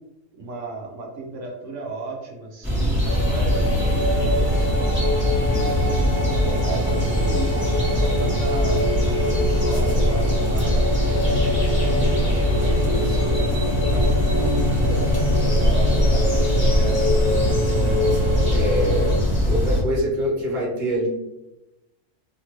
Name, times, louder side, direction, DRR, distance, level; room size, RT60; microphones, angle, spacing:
voice 1, 0.4-4.7 5.3-8.8 9.3-13.3 13.8-18.4, right 2 dB, 65° right, 0 dB, 0.8 m, -36 dB
sound 1, 2.6-19.8, left 1 dB, 10° right, 0.8 m, -21 dB
sound 2, 3.0-19.2, left 1 dB, 30° left, 0.3 m, -26 dB
voice 2, 12.6-13.4 18.5-19.1 19.5-21.1, right 1 dB, 35° right, -4 dB, 1.1 m, -25 dB
2.8 x 2.5 x 2.9 m, 0.95 s
omnidirectional pair, 1.6 m